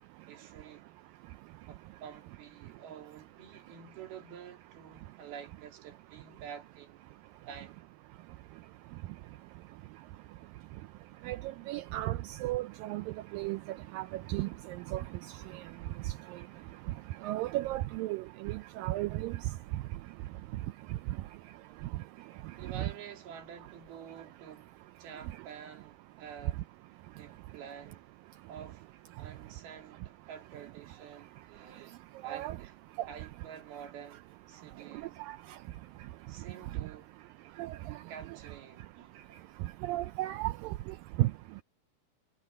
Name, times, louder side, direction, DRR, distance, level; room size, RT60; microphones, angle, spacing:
voice 1, 0.3-0.9 1.7-7.0 7.4-7.8 22.6-24.7 25.0-26.6 27.2-28.1 28.5-28.9 29.2-32.8 33.1-34.2 34.5-35.2 36.3-37.1 38.1-39.4, right 8 dB, 70° right, 4.6 m, -49 dB
voice 2, 11.7-13.0 13.3-13.6 13.9-14.0 14.3-14.5 14.9-15.0 17.2-19.4 22.8-22.9 32.2-32.6 35.3-35.4 37.6-37.8 39.8-40.7 41.2-41.3, right 17 dB, 90° right, 2.0 m, -33 dB
omnidirectional pair, 4.6 m